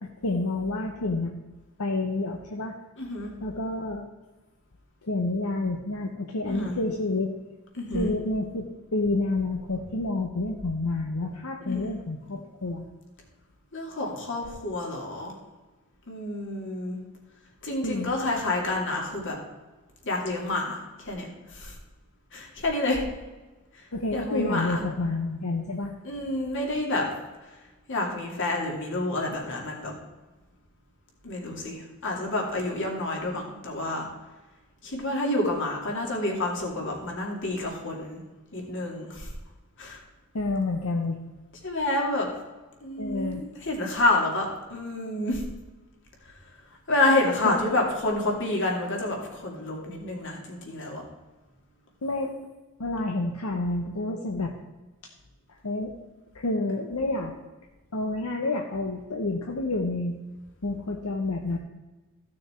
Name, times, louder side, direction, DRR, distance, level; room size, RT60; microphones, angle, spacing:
voice 1, 0.0-1.3 1.8-2.7 3.4-4.0 5.0-7.3 7.9-12.9 17.8-18.1 23.9-25.9 40.3-41.2 43.0-43.4 47.4-47.5 52.0-52.3 52.8-54.5 55.6-55.9 56.3-57.3 57.9-60.1 60.6-61.6, left 2 dB, 80° left, 2 dB, 0.9 m, -29 dB
voice 2, 3.0-3.3 6.5-6.8 7.7-8.1 11.6-11.8 13.7-15.4 16.1-17.0 17.6-19.4 20.0-21.8 22.3-23.0 23.7-24.8 26.0-27.1 27.5-27.6 27.9-29.9 31.2-34.1 34.8-38.2 38.5-39.3 39.8-40.0 41.6-42.3 42.8-45.4 46.2-46.4 46.9-51.0, left 2 dB, 60° left, 0 dB, 2.5 m, -29 dB
14.5 x 6.4 x 4.4 m, 1.2 s
head